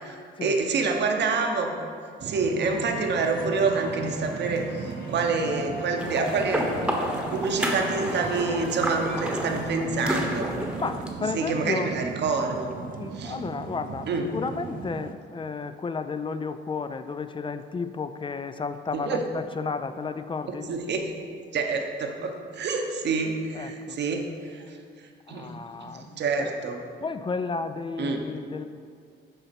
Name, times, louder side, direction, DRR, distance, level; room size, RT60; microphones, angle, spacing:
voice 1, 0.0-1.7 2.2-6.7 7.0-10.5 11.3-12.7 13.1-13.4 14.1-14.3 18.9-19.2 20.5-21.1 21.5-25.5 25.8-26.8 28.0-28.2, right 4 dB, 60° right, 3 dB, 0.9 m, -27 dB
sound 1, 2.2-15.1, right 6 dB, 45° right, 0.5 m, -38 dB
sound 2, 2.6-9.8, left 2 dB, 55° left, 1.4 m, -41 dB
sound 3, 6.0-11.1, equal, 5° right, 1.0 m, -30 dB
voice 2, 10.8-11.9 12.9-20.7 23.5-24.0 25.3-26.1 26.4-26.5 27.0-28.6, left 4 dB, 25° left, 11 dB, 0.3 m, -32 dB
6.8 x 4.2 x 5.9 m, 2.2 s
cardioid pair, 90°, 20 cm